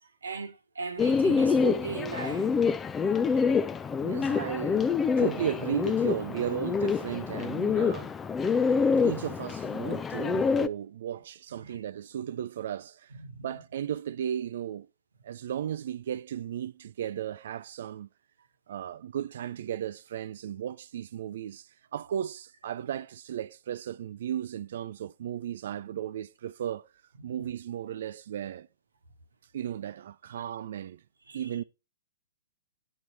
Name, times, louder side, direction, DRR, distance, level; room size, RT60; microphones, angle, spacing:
voice 1, 0.0-2.6 11.6-11.8 13.1-13.6 27.2-27.5 30.4-30.5 31.3-31.6, right 5 dB, 80° right, 1.1 m, -38 dB
Bird, 1.0-10.7, left 5 dB, 15° left, 0.4 m, -26 dB
voice 2, 4.0-8.1 9.0-13.1 13.4-14.9 15.2-18.1 18.7-26.9 27.2-28.7 29.5-31.0 31.3-31.6, right 10 dB, 60° right, 0.3 m, -35 dB
8.6 x 4.6 x 4.1 m
hypercardioid pair, 115°, 0 cm